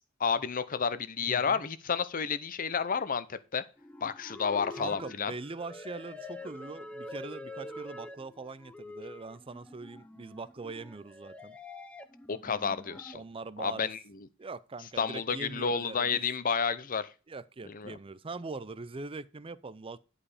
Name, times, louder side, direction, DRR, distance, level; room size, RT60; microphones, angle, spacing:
voice 1, 0.2-3.6 4.0-5.3 12.3-13.2 13.6-14.0 15.0-17.1 17.6-18.0, left 6 dB, 40° left, 0.7 m, -31 dB
voice 2, 1.2-1.6 4.8-11.6 13.1-13.9 14.4-16.2 17.3-20.0, right 3 dB, 25° right, 0.5 m, -42 dB
sound 1, 3.8-13.2, left 2 dB, 5° left, 0.8 m, -46 dB
11.0 x 4.9 x 4.9 m
head